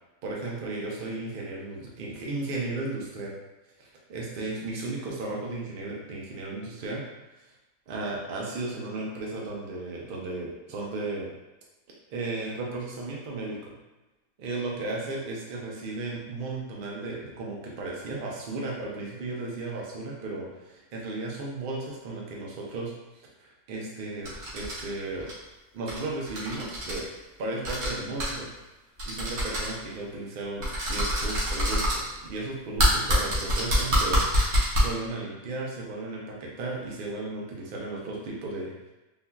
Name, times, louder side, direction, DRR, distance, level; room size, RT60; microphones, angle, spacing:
voice 1, 0.2-3.4 3.8-7.0 7.9-11.3 12.1-13.7 14.4-25.3 25.7-27.1 27.4-28.5 29.0-38.7, right 2 dB, 50° right, -3 dB, 0.6 m, -35 dB
sound 1, 24.3-24.8 25.2-25.3 25.9-26.0 26.3-27.0 27.6-27.9 28.2-28.3 29.0-29.7 30.6-32.0 32.8-34.8, equal, 70° right, 1.3 m, -25 dB
3.7 x 2.5 x 2.2 m, 1.1 s
omnidirectional pair, 1.5 m